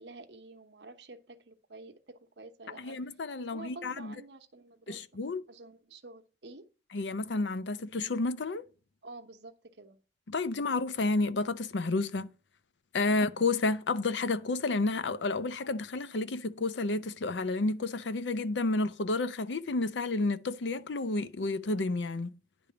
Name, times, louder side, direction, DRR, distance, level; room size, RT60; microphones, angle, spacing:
voice 1, 0.0-3.0 3.4-5.0 5.5-6.7 9.0-10.0, right 2 dB, 65° right, 1.0 m, -49 dB
voice 2, 2.8-4.1 4.9-5.4 6.9-8.6 10.3-12.3 12.9-22.4, left 3 dB, 80° left, 0.6 m, -31 dB
10.0 x 3.4 x 6.8 m
head